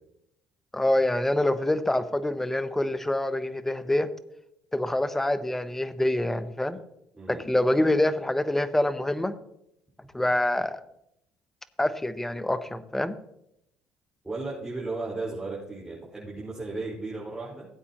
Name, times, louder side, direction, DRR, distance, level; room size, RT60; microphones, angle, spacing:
voice 1, 0.7-4.1 4.7-6.8 7.3-9.3 10.1-10.8 11.8-13.1, left 1 dB, 10° left, 13 dB, 0.9 m, -26 dB
voice 2, 14.2-17.7, right 3 dB, 15° right, -6 dB, 5.3 m, -35 dB
17.0 x 8.4 x 3.0 m, 0.80 s
supercardioid pair, 75°, 3 cm